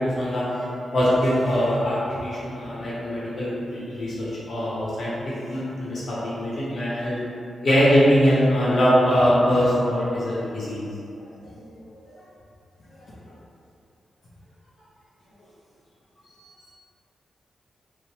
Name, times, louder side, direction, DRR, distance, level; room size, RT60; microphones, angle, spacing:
voice 1, 0.0-7.2 7.6-10.8, equal, 60° left, -8 dB, 0.9 m, -22 dB
voice 2, 11.2-12.1 13.0-13.1 16.3-16.7, equal, 85° left, -11 dB, 0.5 m, -49 dB
2.8 x 2.1 x 3.0 m, 2.6 s
cardioid pair, 85°, 0 cm